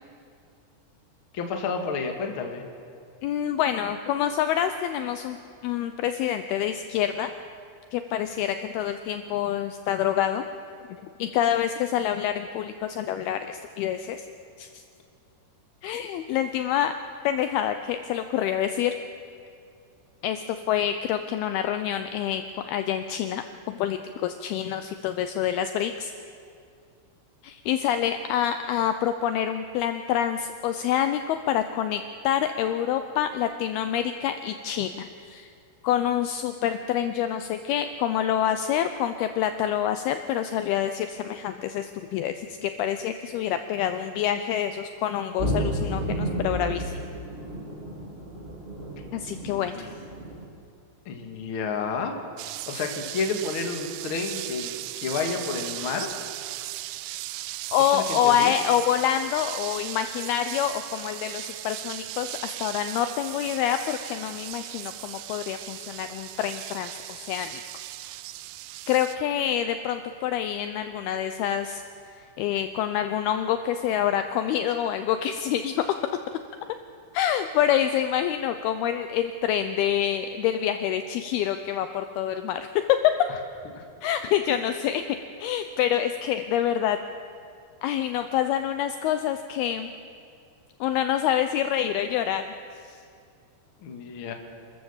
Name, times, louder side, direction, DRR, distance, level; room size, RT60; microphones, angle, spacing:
voice 1, 1.3-2.6 49.4-49.9 51.0-56.1 57.9-58.5 83.3-83.4 83.7-83.8 93.8-94.3, left 4 dB, 50° left, 4 dB, 1.6 m, -31 dB
voice 2, 3.2-5.4 5.6-7.3 7.9-10.4 11.2-14.3 14.6-14.8 15.8-16.9 17.2-18.9 20.2-26.1 27.4-35.5 35.8-46.9 49.1-49.8 57.7-67.6 68.9-71.8 72.1-75.9 77.1-83.1 84.0-87.0 87.8-89.9 90.8-92.5 92.8-93.0, left 10 dB, 80° left, 9 dB, 2.3 m, -27 dB
sound 1, 45.4-50.4, right 1 dB, 20° right, 1.9 m, -32 dB
sound 2, 52.4-69.2, right 16 dB, 90° right, 2.1 m, -37 dB
28.0 x 14.0 x 7.2 m, 2.4 s
omnidirectional pair, 5.0 m